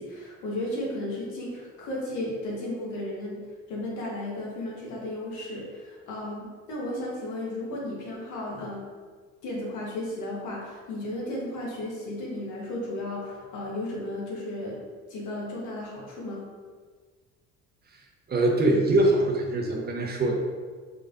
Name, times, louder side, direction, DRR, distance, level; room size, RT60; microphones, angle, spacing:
voice 1, 0.0-3.4 3.7-8.8 9.4-14.8 15.1-16.4, left 1 dB, 80° left, -3 dB, 1.1 m, -34 dB
voice 2, 18.3-20.4, right 2 dB, 35° right, 1 dB, 0.6 m, -23 dB
3.8 x 3.3 x 2.5 m, 1.5 s
cardioid pair, 90°, 30 cm